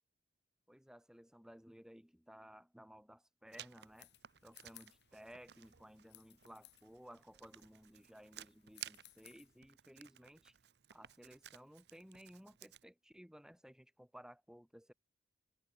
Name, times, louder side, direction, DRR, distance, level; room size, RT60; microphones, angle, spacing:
voice 1, 0.7-4.1 4.4-10.5 10.9-14.9, equal, 5° right, 1.4 m, -58 dB
sound 1, 3.5-9.6, left 16 dB, 65° left, 1.4 m, -65 dB
Writing, 3.5-12.8, right 12 dB, 65° right, 0.8 m, -56 dB
head